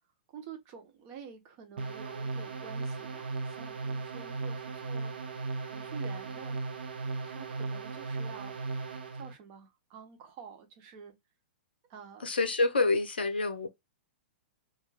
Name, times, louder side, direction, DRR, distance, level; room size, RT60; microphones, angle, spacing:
voice 1, 0.3-5.1 5.6-6.6 7.2-8.8 9.2-11.1 11.9-12.3, right 6 dB, 40° right, 0.9 m, -49 dB
sound 1, 1.8-9.3, right 3 dB, 70° right, 0.7 m, -37 dB
voice 2, 12.2-13.7, left 3 dB, 75° left, 0.6 m, -27 dB
2.5 x 2.1 x 3.2 m
figure-of-eight pair, 110°, 6 cm